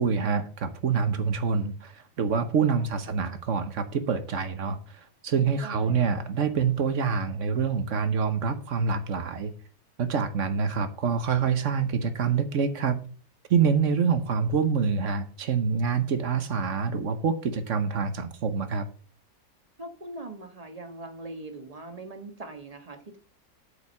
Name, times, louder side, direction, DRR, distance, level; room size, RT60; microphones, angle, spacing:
voice 1, 0.0-9.5 10.0-13.0 13.5-18.9, right 6 dB, 55° right, 10 dB, 1.2 m, -26 dB
voice 2, 2.8-3.4 5.6-6.1 16.3-16.4 19.8-23.2, right 2 dB, 25° right, 6 dB, 1.3 m, -42 dB
8.3 x 5.0 x 7.2 m, 0.41 s
omnidirectional pair, 1.6 m